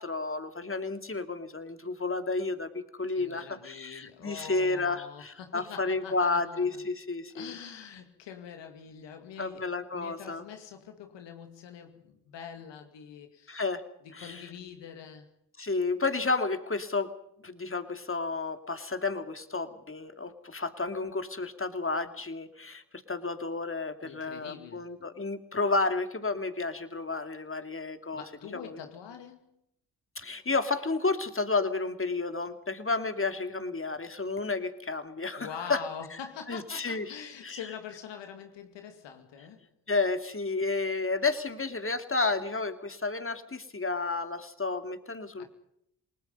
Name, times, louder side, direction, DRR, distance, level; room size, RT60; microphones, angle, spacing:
voice 1, 0.0-7.5 9.4-10.4 13.5-13.8 14.1-14.4 15.6-17.1 17.4-28.2 28.5-28.8 30.2-35.8 36.5-37.1 37.4-37.6 39.9-45.5, left 3 dB, 30° left, 8 dB, 2.6 m, -31 dB
voice 2, 3.1-6.8 7.3-13.7 14.0-15.3 24.0-25.0 28.1-29.6 35.4-39.7 45.4-45.5, left 8 dB, 85° left, 6 dB, 2.3 m, -44 dB
28.0 x 19.5 x 5.4 m, 0.76 s
supercardioid pair, 40°, 42 cm